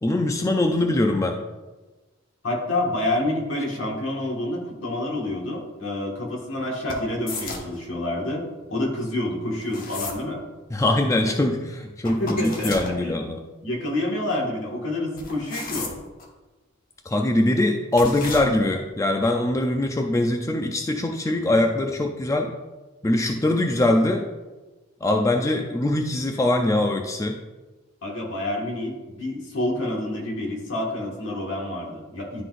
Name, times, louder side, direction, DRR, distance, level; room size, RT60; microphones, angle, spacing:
voice 1, 0.0-1.4 10.7-13.4 17.1-22.5 23.0-24.3 25.0-27.4, left 1 dB, 15° left, 3 dB, 0.3 m, -22 dB
voice 2, 2.4-10.4 12.0-13.2 13.6-16.0 28.0-32.4, left 1 dB, 70° left, -1 dB, 1.6 m, -28 dB
sound 1, 6.9-7.8 9.6-10.2 12.0-12.9 15.2-16.3 17.9-18.4, left 3 dB, 45° left, 0.9 m, -33 dB
11.5 x 3.9 x 2.5 m, 1.2 s
head